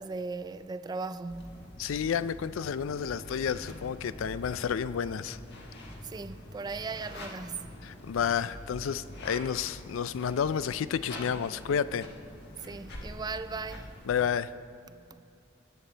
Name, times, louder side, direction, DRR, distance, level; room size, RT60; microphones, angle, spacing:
voice 1, 0.0-1.7 6.0-7.8 12.6-13.9 14.9-15.2, right 4 dB, 20° right, 0.3 m, -38 dB
sound 1, 1.3-14.2, left 1 dB, 60° left, 1.5 m, -45 dB
voice 2, 1.8-5.4 7.8-12.1 14.0-14.5, left 7 dB, 85° left, 0.4 m, -30 dB
19.0 x 7.5 x 4.0 m
head